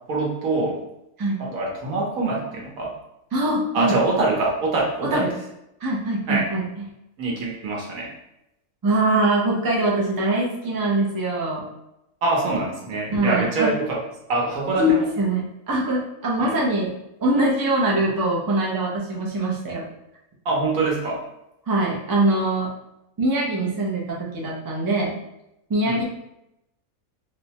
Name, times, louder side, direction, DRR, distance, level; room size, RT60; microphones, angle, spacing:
voice 1, 0.1-0.8 1.4-2.9 3.7-5.3 6.3-6.4 7.2-8.1 12.2-14.0 14.3-15.1 16.4-16.6 20.4-21.2 25.8-26.0, right 3 dB, 75° right, -2 dB, 1.3 m, -24 dB
voice 2, 3.3-4.0 5.0-5.3 5.8-6.9 8.8-11.6 13.1-13.7 14.8-14.9 15.2-16.9 17.2-19.9 21.7-22.7 23.2-25.2 25.7-26.0, right 2 dB, 35° right, -3 dB, 0.3 m, -23 dB
4.2 x 2.1 x 2.8 m, 0.85 s
omnidirectional pair, 1.5 m